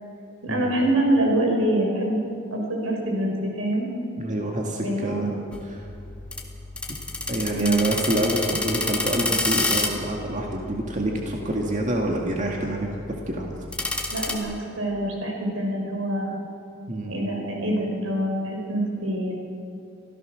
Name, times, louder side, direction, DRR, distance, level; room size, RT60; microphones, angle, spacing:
voice 1, 0.4-2.2 2.5-3.9 4.8-5.3 7.5-7.8 14.1-16.3 17.1-19.3, right 1 dB, 85° right, 0 dB, 5.4 m, -25 dB
voice 2, 4.2-5.3 5.6-5.8 7.3-12.9 13.3-13.6 16.9-17.1, right 1 dB, 35° right, 0 dB, 2.1 m, -27 dB
sound 1, 5.5-14.4, left 2 dB, 5° left, 2.0 m, -30 dB
25.5 x 16.0 x 6.4 m, 2.9 s
head